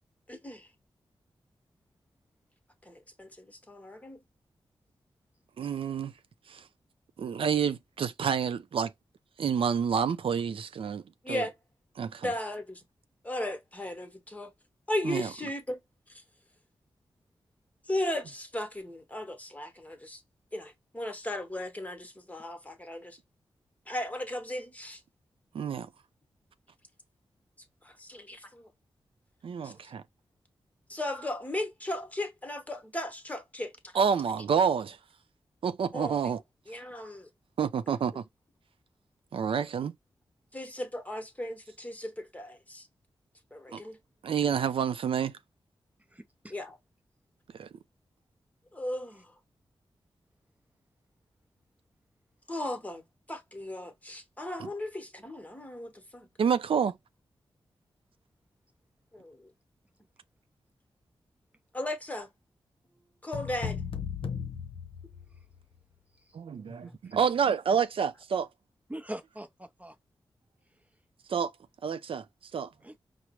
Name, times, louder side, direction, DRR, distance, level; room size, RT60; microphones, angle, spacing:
voice 1, 0.3-0.7 2.8-4.2 11.2-11.5 12.2-12.8 13.2-14.5 14.9-15.8 16.1-16.2 17.8-20.2 20.5-23.2 23.9-25.0 27.8-28.7 29.6-29.7 30.9-33.9 35.9-36.3 36.7-37.3 40.5-42.9 43.5-44.0 46.5-46.8 48.7-49.3 52.5-53.0 53.3-56.3 59.1-59.5 61.7-62.3 63.2-63.8 66.5-67.0, left 1 dB, 15° left, 1.0 m, -36 dB
voice 2, 5.6-6.1 6.5-6.7 7.2-8.9 9.4-11.5 12.0-12.3 15.0-15.3 25.5-25.9 29.4-30.0 33.9-35.0 35.6-36.4 37.6-38.2 39.3-39.9 43.7-43.8 44.2-45.4 47.5-47.7 54.6-54.7 56.4-57.0 66.3-68.5 71.3-71.5 71.8-72.7, right 7 dB, 70° right, 0.4 m, -29 dB
voice 3, 46.1-46.5 66.2-66.4 67.0-67.1 68.9-70.0 72.8-73.0, right 1 dB, 15° right, 0.6 m, -42 dB
sound 1, 63.3-65.6, left 7 dB, 70° left, 0.7 m, -36 dB
4.8 x 2.0 x 2.9 m
cardioid pair, 60°, 9 cm